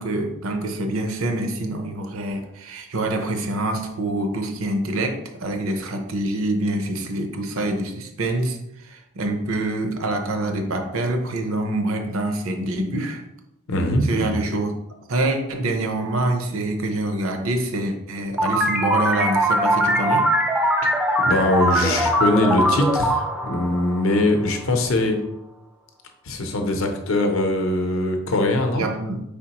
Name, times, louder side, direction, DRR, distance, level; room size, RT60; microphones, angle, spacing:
voice 1, 0.0-13.2 14.0-14.7 15.1-20.3 28.7-29.2, right 2 dB, 70° right, 5 dB, 0.6 m, -26 dB
voice 2, 13.7-14.3 20.8-20.9 21.2-25.2 26.2-28.9, left 1 dB, 65° left, 4 dB, 0.6 m, -22 dB
sound 1, 18.4-24.6, right 1 dB, 5° right, 0.3 m, -21 dB
4.4 x 3.5 x 2.9 m, 0.84 s
head